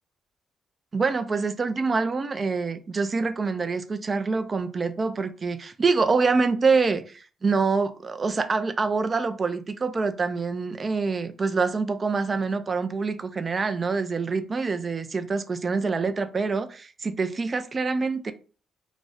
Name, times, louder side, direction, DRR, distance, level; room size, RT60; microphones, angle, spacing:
voice 1, 0.9-18.3, right 4 dB, 35° right, 0.3 m, -26 dB
2.4 x 2.1 x 3.9 m
cardioid pair, 90°, 0 cm